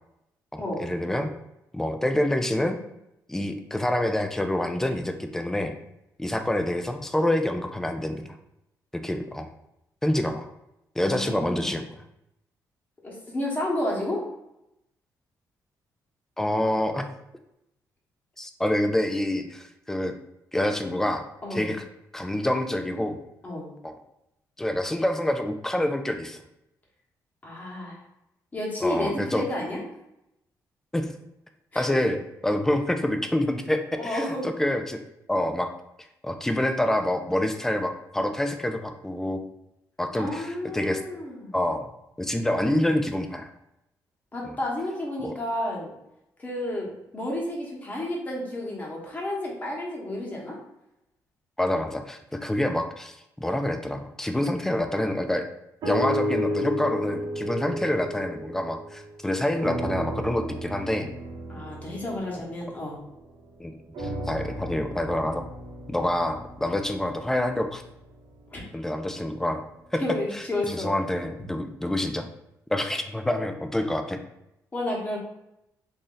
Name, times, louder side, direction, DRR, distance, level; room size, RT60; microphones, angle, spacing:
voice 1, 0.5-1.3 1.7-2.8 3.3-5.7 6.2-8.2 8.9-9.5 10.0-10.5 11.0-11.9 16.4-17.1 18.4-20.1 20.5-21.2 21.5-21.8 22.1-23.2 23.8-23.9 24.6-26.4 28.8-29.4 30.9-31.1 31.8-35.0 35.3-35.7 36.2-39.4 40.0-41.0 41.5-41.9 42.2-43.5 44.4-44.5 45.2-45.3 51.6-55.5 55.8-61.1 63.6-63.7 64.0-65.4 65.9-67.8 68.7-69.6 69.9-70.0 70.3-72.3 72.7-74.2, left 1 dB, 5° left, 6 dB, 0.4 m, -27 dB
voice 2, 11.0-11.7 13.0-14.2 21.4-21.7 23.4-23.7 27.4-28.0 28.5-29.8 31.7-31.9 33.9-34.5 40.1-41.5 44.3-45.9 46.4-50.6 61.5-63.0 68.5-68.6 70.0-70.9 74.7-75.2, left 1 dB, 20° left, -3 dB, 1.1 m, -31 dB
sound 1, 55.8-59.2 59.6-63.3 63.9-68.2 68.8-68.9, equal, 65° right, 1.0 m, -33 dB
3.1 x 2.6 x 3.8 m, 0.85 s
cardioid pair, 130°, 7 cm